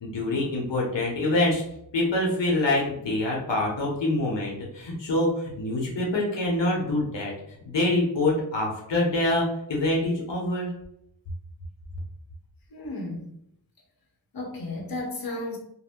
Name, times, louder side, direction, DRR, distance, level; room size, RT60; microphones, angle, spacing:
voice 1, 0.0-1.6 1.9-10.7, left 2 dB, 80° left, -2 dB, 0.9 m, -25 dB
voice 2, 12.7-13.3 14.3-15.6, left 2 dB, 55° left, -1 dB, 0.9 m, -34 dB
2.5 x 2.1 x 3.5 m, 0.75 s
wide cardioid pair, 65°, 43 cm